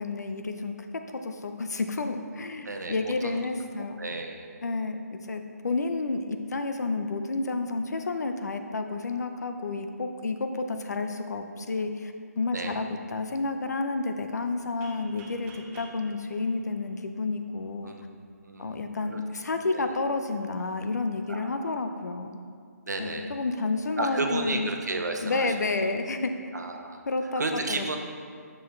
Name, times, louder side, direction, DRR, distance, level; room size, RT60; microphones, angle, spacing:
voice 1, 0.0-4.0 4.6-18.0 18.6-22.4 23.0-24.7 25.2-26.3 27.1-27.4 27.7-28.0, left 3 dB, 75° left, 7 dB, 0.6 m, -30 dB
voice 2, 2.6-3.4 4.0-4.5 12.5-12.8 17.8-18.0 18.4-18.8 19.1-19.2 19.7-19.9 21.3-21.7 22.8-23.3 24.0-25.9 26.5-27.0 27.4-28.0, right 3 dB, 85° right, 4 dB, 0.8 m, -33 dB
sound 1, 14.8-17.6, right 2 dB, 15° right, 0.6 m, -51 dB
6.9 x 6.3 x 3.1 m, 2.2 s
hypercardioid pair, 155°, 9 cm